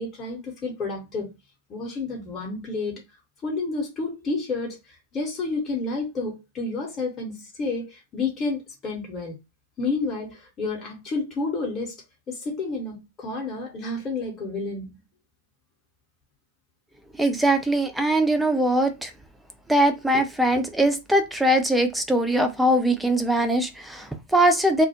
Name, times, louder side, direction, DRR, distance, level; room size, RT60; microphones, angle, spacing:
voice 1, 0.0-1.3 1.7-3.0 3.4-9.4 9.8-15.0, left 3 dB, 25° left, 0.8 m, -30 dB
voice 2, 17.2-19.1 19.7-24.9, right 1 dB, 5° right, 0.5 m, -21 dB
2.3 x 2.0 x 2.7 m
figure-of-eight pair, 90°, 0 cm